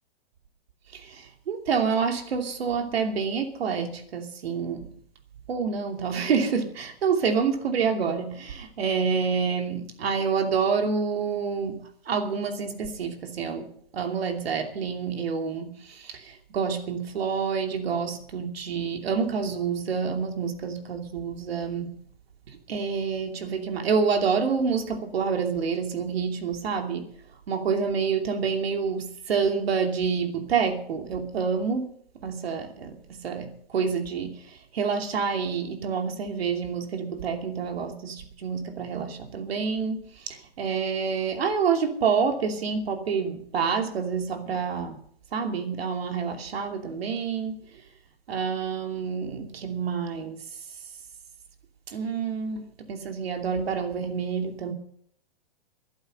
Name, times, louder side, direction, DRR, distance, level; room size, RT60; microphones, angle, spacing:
voice 1, 0.9-4.9 5.5-22.0 22.5-27.1 27.5-31.9 32.2-45.0 45.3-47.8 48.3-50.4 51.9-54.7, right 6 dB, 80° right, 2.8 m, -28 dB
13.0 x 11.5 x 6.6 m
hypercardioid pair, 135°, 30 cm